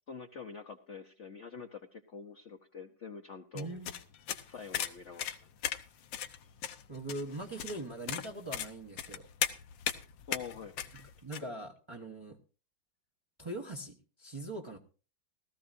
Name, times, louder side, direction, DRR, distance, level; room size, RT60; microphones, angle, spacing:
voice 1, 0.1-3.7 4.5-5.5 10.3-10.7 11.4-11.5, left 6 dB, 55° left, 4 dB, 0.9 m, -46 dB
voice 2, 3.5-3.9 6.9-9.3 11.0-12.4 13.4-14.8, right 2 dB, 25° right, 1 dB, 0.6 m, -41 dB
sound 1, 3.6-11.4, left 9 dB, 75° left, 1.5 m, -37 dB
17.0 x 14.0 x 2.6 m, 0.36 s
omnidirectional pair, 2.1 m